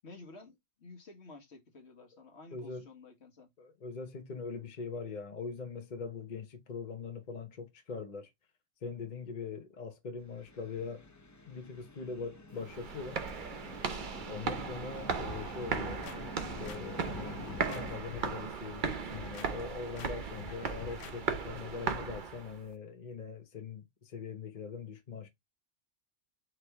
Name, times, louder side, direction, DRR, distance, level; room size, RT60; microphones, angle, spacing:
voice 1, 0.0-3.5, left 3 dB, 60° left, 1.5 m, -52 dB
voice 2, 2.5-2.9 3.6-8.3 8.8-11.1 11.5-13.2 14.3-16.0 16.4-25.3, left 5 dB, 40° left, 0.9 m, -42 dB
sound 1, 10.2-18.0, left 2 dB, 25° left, 0.4 m, -48 dB
sound 2, 12.6-22.6, right 5 dB, 45° right, 0.8 m, -37 dB
sound 3, 15.2-16.2 16.6-17.8 18.1-18.5 18.9-19.5 20.0-20.1 20.4-21.1 21.5-21.6, left 6 dB, 80° left, 1.1 m, -48 dB
4.7 x 3.0 x 3.4 m
omnidirectional pair, 1.3 m